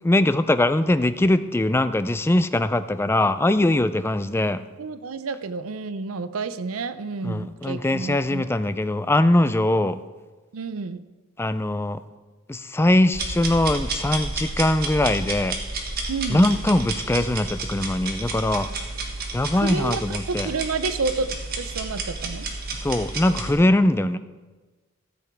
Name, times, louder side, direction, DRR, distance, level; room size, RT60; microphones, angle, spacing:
voice 1, 0.0-4.6 7.2-10.0 11.4-12.0 12.5-15.6 16.3-18.7 19.3-20.5 22.8-24.2, left 1 dB, 10° left, 12 dB, 0.3 m, -21 dB
voice 2, 4.8-8.5 10.5-11.0 16.1-16.5 19.5-22.5, right 4 dB, 80° right, 13 dB, 0.6 m, -30 dB
sound 1, 13.1-23.5, right 3 dB, 45° right, 1.5 m, -31 dB
14.0 x 7.9 x 4.6 m, 1.3 s
head